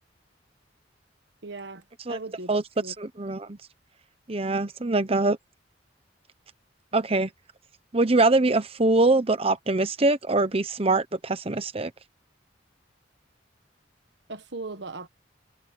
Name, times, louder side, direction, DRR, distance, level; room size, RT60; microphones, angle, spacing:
voice 1, 1.4-2.5 2.8-2.9 14.3-15.1, right 3 dB, 70° right, 1.6 m, -38 dB
voice 2, 3.0-3.6 4.3-5.4 6.9-7.3 7.9-11.9, right 2 dB, 30° right, 1.0 m, -23 dB
head